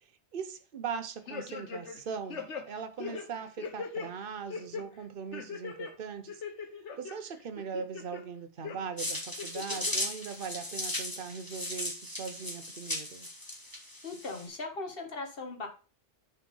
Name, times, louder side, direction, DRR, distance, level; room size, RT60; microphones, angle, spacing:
voice 1, 0.0-6.4 7.0-13.3, right 6 dB, 55° right, 1.0 m, -40 dB
sound 1, 1.3-2.0 2.3-4.1 4.5-4.8 5.3-5.9 6.3-7.1 7.6-8.2 8.6-8.8 9.4-9.9 10.3-10.4, left 5 dB, 90° left, 1.4 m, -39 dB
sound 2, 9.0-14.5, left 1 dB, 20° left, 1.8 m, -37 dB
voice 2, 14.0-15.7, left 3 dB, 55° left, 1.7 m, -38 dB
6.6 x 4.7 x 5.3 m
omnidirectional pair, 1.2 m